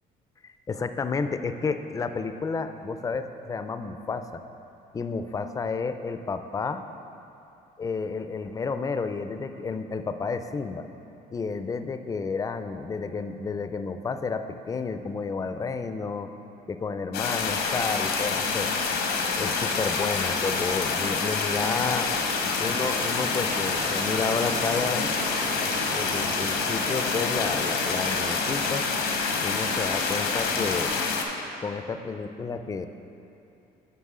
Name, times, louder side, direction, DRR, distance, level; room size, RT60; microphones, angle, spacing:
voice 1, 0.4-4.4 4.9-6.9 7.8-10.9 11.3-16.3 16.7-18.7 19.4-22.1 22.6-25.2 25.9-28.8 29.4-30.9 31.6-32.9, left 4 dB, 20° left, 9 dB, 0.3 m, -31 dB
sound 1, 17.1-31.2, left 4 dB, 85° left, 0.9 m, -27 dB
sound 2, 20.4-30.7, right 5 dB, 75° right, 0.6 m, -40 dB
9.5 x 5.5 x 3.7 m, 2.8 s
cardioid pair, 110°, 17 cm